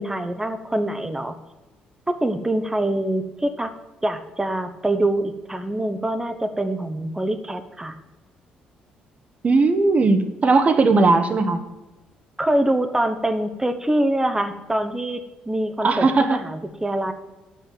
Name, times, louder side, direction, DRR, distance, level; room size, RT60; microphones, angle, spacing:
voice 1, 0.0-1.3 2.1-3.7 4.0-8.0 12.4-17.1, right 1 dB, 15° right, 8 dB, 1.0 m, -24 dB
voice 2, 9.4-11.6 15.8-16.4, right 3 dB, 40° right, 9 dB, 1.1 m, -18 dB
8.6 x 5.8 x 7.9 m, 1.0 s
hypercardioid pair, 55°, 4 cm